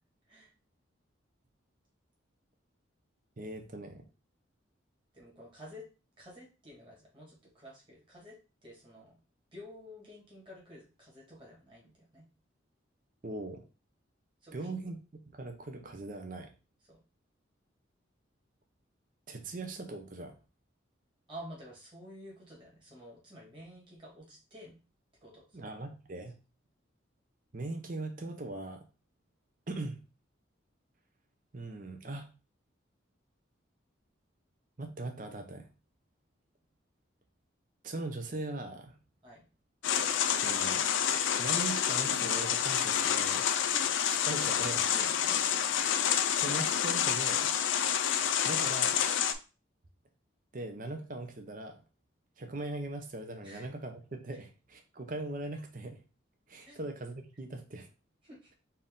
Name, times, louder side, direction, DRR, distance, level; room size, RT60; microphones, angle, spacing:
voice 1, 3.4-4.0 13.2-13.6 14.5-15.0 15.3-16.5 19.3-20.4 25.5-26.3 27.5-28.8 29.7-30.0 31.5-32.3 34.8-35.7 37.8-38.9 40.3-40.9 41.4-43.4 44.1-44.9 46.3-47.5 48.4-49.0 50.5-51.8 52.4-56.0 56.5-57.9, right 2 dB, 45° right, 5 dB, 0.7 m, -40 dB
voice 2, 5.1-5.9 6.2-8.4 8.6-9.2 9.5-12.2 14.4-14.8 16.9-17.0 21.3-24.8 25.2-25.7 39.2-39.4 43.2-43.4 43.7-43.8 44.8-46.3 53.4-53.7 56.6-56.8 58.2-58.5, equal, 25° right, -3 dB, 1.8 m, -50 dB
sound 1, 39.8-49.3, left 9 dB, 75° left, 0.4 m, -28 dB
4.4 x 2.6 x 3.6 m, 0.32 s
head